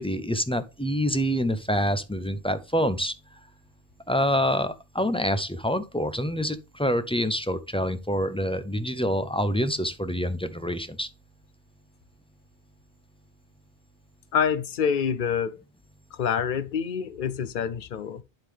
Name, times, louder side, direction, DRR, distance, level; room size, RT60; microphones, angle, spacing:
voice 1, 0.0-3.1 4.1-11.1, equal, 10° left, 0.3 m, -26 dB
voice 2, 14.3-15.6 16.1-18.2, left 7 dB, 55° left, 0.8 m, -27 dB
11.5 x 3.8 x 3.4 m
omnidirectional pair, 1.1 m